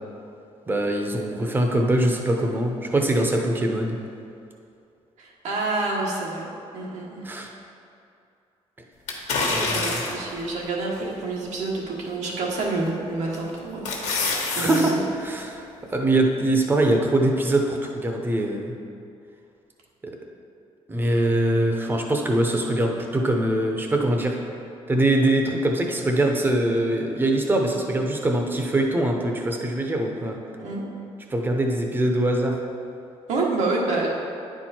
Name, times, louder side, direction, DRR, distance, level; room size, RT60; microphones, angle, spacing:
voice 1, 0.7-4.0 7.2-7.5 9.5-10.0 14.5-14.9 15.2-18.7 20.0-20.1 20.9-24.4 24.9-30.4 31.3-32.6, right 1 dB, 15° right, 2 dB, 0.7 m, -23 dB
voice 2, 5.2-6.5 6.7-7.2 9.5-13.9 14.5-15.0 30.6-30.9 33.3-34.1, right 3 dB, 85° right, -2 dB, 1.5 m, -28 dB
sound 1, 9.1-10.3 10.9-11.0 12.6-12.9 13.4-14.9 15.3-15.4, left 3 dB, 85° left, 1.3 m, -26 dB
10.0 x 4.6 x 4.4 m, 2.6 s
cardioid pair, 165°, 12 cm